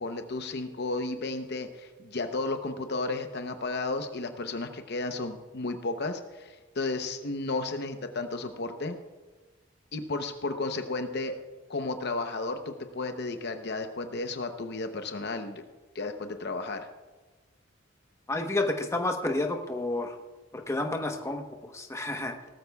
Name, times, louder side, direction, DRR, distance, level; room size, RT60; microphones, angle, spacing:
voice 1, 0.0-9.0 9.9-11.4 11.7-15.6 15.9-16.9, left 3 dB, 55° left, 7 dB, 0.8 m, -33 dB
voice 2, 18.3-20.2 20.5-22.3, left 2 dB, 15° left, 4 dB, 1.0 m, -30 dB
18.5 x 13.5 x 2.3 m, 1.3 s
head